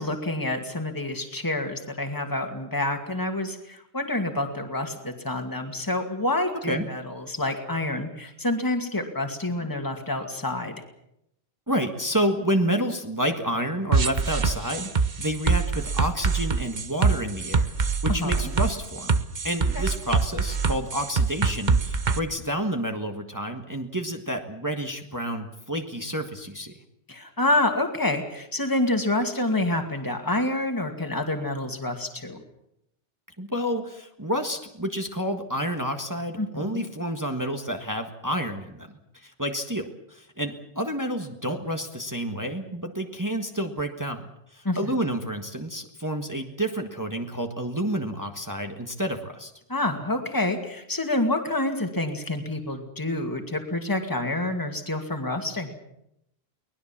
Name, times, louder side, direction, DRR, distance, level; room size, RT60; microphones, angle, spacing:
voice 1, 0.0-10.7 18.1-18.4 19.7-19.9 27.1-32.4 36.4-36.8 44.6-44.9 49.7-55.7, left 2 dB, 20° left, 5 dB, 2.4 m, -28 dB
voice 2, 11.7-19.1 19.4-26.8 33.4-38.9 39.1-49.5, equal, 20° right, 4 dB, 1.6 m, -29 dB
sound 1, 13.9-22.2, right 4 dB, 45° right, 1.1 m, -24 dB
24.0 x 19.5 x 7.4 m, 0.78 s
omnidirectional pair, 1.1 m